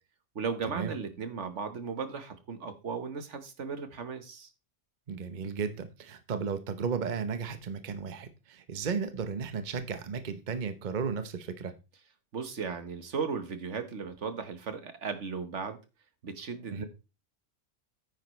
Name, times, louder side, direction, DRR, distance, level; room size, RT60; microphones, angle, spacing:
voice 1, 0.3-4.5 12.3-15.8 16.2-16.8, right 5 dB, 75° right, 9 dB, 1.6 m, -36 dB
voice 2, 5.1-11.7 16.7-16.8, right 6 dB, 45° right, 10 dB, 1.0 m, -34 dB
9.6 x 9.2 x 3.2 m, 0.29 s
omnidirectional pair, 1.2 m